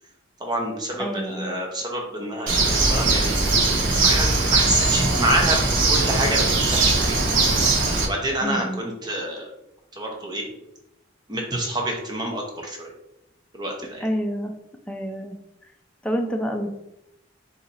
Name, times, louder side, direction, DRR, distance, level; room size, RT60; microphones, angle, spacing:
voice 1, 0.4-5.6 5.9-7.3 8.1-9.5 9.9-10.4 11.3-12.9 13.5-14.1, right 1 dB, 20° right, 0 dB, 0.8 m, -28 dB
voice 2, 1.0-1.6 8.4-8.8 14.0-14.5 14.9-15.4 16.0-16.8, equal, 5° left, 3 dB, 0.4 m, -28 dB
Bird, 2.5-8.0, right 3 dB, 75° right, 1.0 m, -20 dB
4.1 x 2.8 x 4.1 m, 0.84 s
head